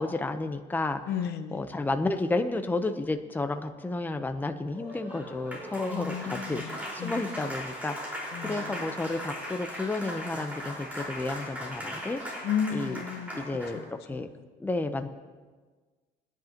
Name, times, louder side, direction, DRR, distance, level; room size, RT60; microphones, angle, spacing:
voice 1, 0.0-1.0 1.5-12.2 12.7-13.0 13.3-13.8 14.1-14.3 14.6-15.1, left 2 dB, 10° left, 0.8 m, -31 dB
voice 2, 1.1-1.6 5.9-6.7 7.0-7.2 8.3-8.6 12.4-13.4 14.1-14.2, left 7 dB, 75° left, 1.0 m, -32 dB
Applause, 4.7-13.9, equal, 10° right, 4.6 m, -38 dB
23.0 x 10.5 x 3.0 m
cardioid pair, 110°, 17 cm